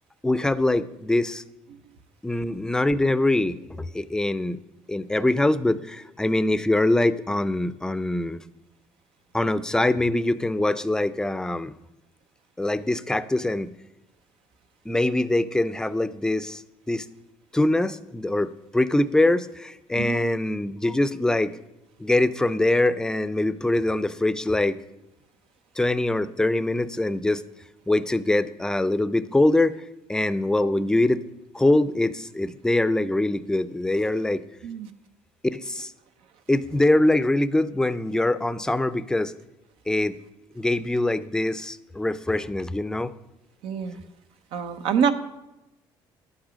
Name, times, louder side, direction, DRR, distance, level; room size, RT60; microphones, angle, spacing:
voice 1, 0.2-1.4 2.2-4.6 4.9-8.4 9.3-11.7 12.6-13.7 14.9-17.1 17.5-21.5 22.0-24.8 25.8-27.4 27.9-29.8 30.1-31.2 31.5-34.4 35.5-35.9 36.5-39.3 39.9-40.2 40.5-43.1, left 2 dB, 5° left, 14 dB, 0.5 m, -23 dB
voice 2, 43.6-44.0 44.5-45.1, right 7 dB, 85° right, 8 dB, 0.9 m, -25 dB
11.0 x 9.0 x 5.1 m, 0.96 s
cardioid pair, 110°, 9 cm